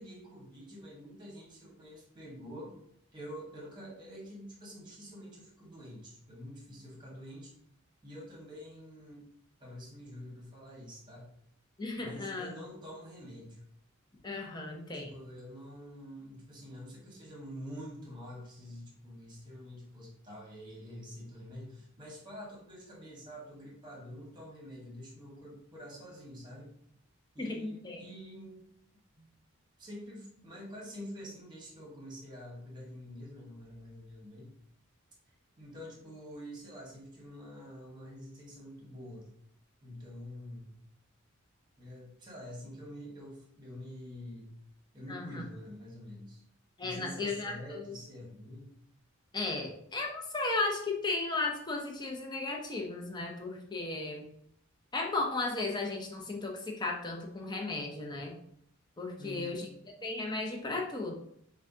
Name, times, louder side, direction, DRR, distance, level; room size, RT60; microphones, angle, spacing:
voice 1, 0.0-2.8 3.1-7.5 8.0-9.2 9.6-11.3 12.0-13.6 14.9-26.7 27.3-28.7 29.2-29.3 29.8-34.5 35.6-39.3 39.8-40.8 41.8-44.5 44.9-46.4 46.8-48.7 59.2-59.6, equal, 20° right, -3 dB, 1.1 m, -47 dB
voice 2, 11.8-12.5 14.2-15.2 27.4-28.0 45.1-45.4 46.8-48.0 49.3-54.3 54.9-58.3 59.0-59.7 60.0-61.1, left 3 dB, 20° left, 0 dB, 0.6 m, -35 dB
6.0 x 2.2 x 2.7 m, 0.71 s
head